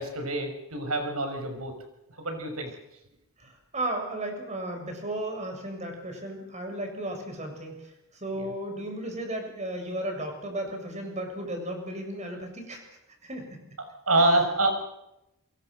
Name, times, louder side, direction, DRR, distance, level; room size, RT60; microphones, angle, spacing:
voice 1, 0.0-1.7 2.2-2.7 8.4-8.5 14.1-14.7, right 2 dB, 90° right, 5 dB, 6.0 m, -26 dB
voice 2, 3.4-12.8 13.2-13.5, right 1 dB, 30° right, 4 dB, 7.0 m, -34 dB
27.0 x 22.5 x 6.5 m, 0.87 s
head